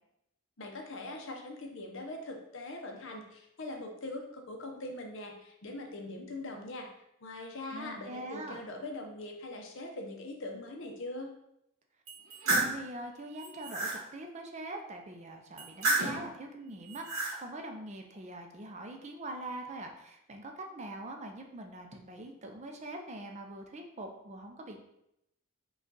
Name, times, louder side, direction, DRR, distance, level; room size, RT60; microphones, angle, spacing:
voice 1, 0.6-6.9 7.2-11.3, left 2 dB, 60° left, 2 dB, 0.7 m, -42 dB
voice 2, 7.7-8.6 12.5-24.8, right 1 dB, 30° right, 3 dB, 0.5 m, -43 dB
sound 1, 12.1-12.8 13.3-14.0 15.6-16.3 16.9-17.4, right 2 dB, 80° right, 1.1 m, -31 dB
5.1 x 2.4 x 3.9 m, 0.81 s
head